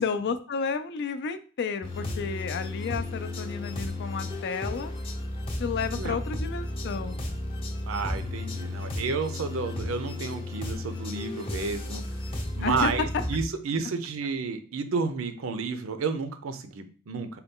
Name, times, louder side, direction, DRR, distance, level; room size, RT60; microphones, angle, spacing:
voice 1, 0.0-4.9 5.6-7.2 12.6-12.9, left 5 dB, 55° left, 9 dB, 0.4 m, -31 dB
sound 1, 1.8-13.4, left 2 dB, 25° left, 0.7 m, -33 dB
voice 2, 7.9-12.0 12.6-17.4, right 4 dB, 75° right, 9 dB, 0.5 m, -31 dB
4.0 x 2.2 x 3.6 m, 0.40 s
head